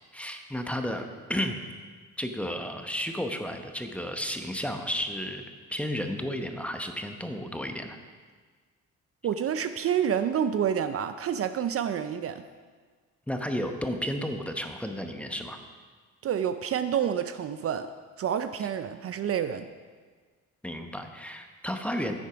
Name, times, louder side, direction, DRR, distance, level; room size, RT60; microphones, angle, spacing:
voice 1, 0.1-1.6 2.2-8.0 13.3-15.6 20.6-22.3, equal, 5° left, 5 dB, 0.9 m, -33 dB
voice 2, 9.2-12.4 16.2-17.9 18.2-19.7, right 8 dB, 50° right, 10 dB, 0.5 m, -28 dB
10.5 x 8.1 x 5.1 m, 1.5 s
cardioid pair, 90°, 30 cm